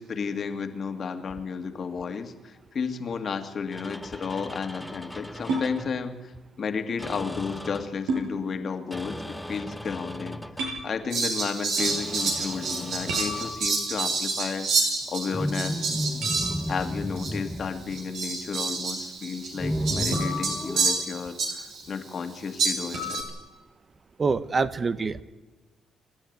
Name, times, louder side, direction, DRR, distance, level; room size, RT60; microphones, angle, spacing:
voice 1, 0.0-6.3 6.6-14.7 15.1-15.9 16.7-23.2, left 5 dB, 50° left, 7 dB, 2.0 m, -33 dB
sound 1, 3.7-6.0 7.0-8.0 8.9-10.8 11.8-13.6 15.3-18.5 19.5-21.0, equal, ahead, 1.1 m, -34 dB
sound 2, 5.5-5.7 8.1-8.3 10.6-10.9 13.1-14.0 16.2-16.8 20.1-21.0 22.9-23.3, right 1 dB, 90° right, 7.2 m, -32 dB
Fowl, 11.1-16.9 17.2-17.3 17.9-21.8 22.6-23.2, right 4 dB, 70° right, 6.3 m, -29 dB
voice 2, 24.2-25.2, right 4 dB, 35° right, 13 dB, 0.8 m, -25 dB
27.0 x 10.5 x 9.3 m, 1.2 s
cardioid pair, 90°, 0 cm